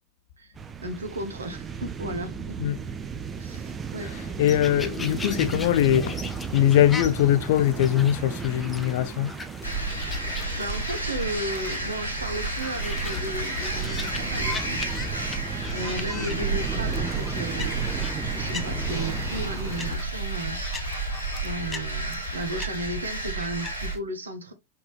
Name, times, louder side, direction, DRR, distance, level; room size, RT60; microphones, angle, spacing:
sound 1, 0.6-20.0, right 6 dB, 20° right, 0.6 m, -36 dB
voice 1, 0.8-2.7 3.4-4.1 9.9-15.0 15.2-18.0 18.3-21.1 21.4-24.5, right 1 dB, 75° right, 1.0 m, -35 dB
voice 2, 4.0-9.3, left 12 dB, 55° left, 0.4 m, -22 dB
sound 2, 4.4-24.0, left 4 dB, 15° left, 0.8 m, -41 dB
sound 3, 9.6-23.9, right 2 dB, 90° right, 1.7 m, -31 dB
5.7 x 2.9 x 3.2 m
figure-of-eight pair, 90°, 0 cm